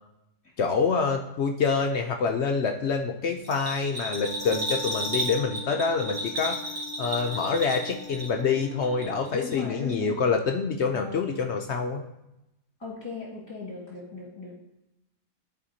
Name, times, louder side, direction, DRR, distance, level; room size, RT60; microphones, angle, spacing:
voice 1, 0.6-6.6 7.0-12.0, left 5 dB, 70° left, 4 dB, 0.6 m, -26 dB
Bell, 3.4-8.5 8.8-9.6 9.9-10.0, right 1 dB, 65° right, 2.0 m, -33 dB
Wind instrument woodwind instrument, 4.1-9.5, left 8 dB, 40° right, 3.3 m, -43 dB
voice 2, 9.3-10.2 10.9-11.3 12.8-14.6, left 4 dB, 15° left, -6 dB, 1.7 m, -37 dB
12.5 x 4.3 x 2.7 m, 0.88 s
omnidirectional pair, 1.7 m